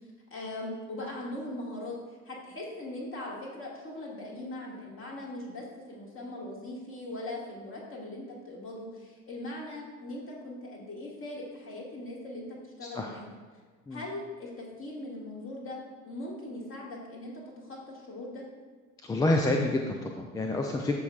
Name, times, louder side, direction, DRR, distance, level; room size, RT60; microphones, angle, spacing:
voice 1, 0.3-13.4 13.9-18.4, left 1 dB, 30° left, -3 dB, 2.1 m, -40 dB
voice 2, 19.0-21.0, left 2 dB, 10° left, 2 dB, 0.4 m, -28 dB
12.5 x 5.1 x 2.5 m, 1.5 s
figure-of-eight pair, 60°, 43 cm